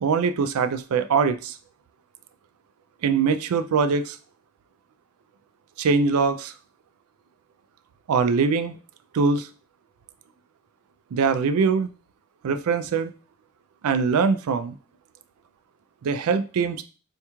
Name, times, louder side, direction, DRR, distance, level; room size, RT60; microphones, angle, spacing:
voice 1, 0.0-1.6 3.0-4.2 5.8-6.5 8.1-8.8 9.1-9.5 11.1-11.9 12.4-13.1 13.8-14.7 16.0-16.8, right 5 dB, 80° right, 10 dB, 0.4 m, -22 dB
4.4 x 2.4 x 2.9 m, 0.36 s
head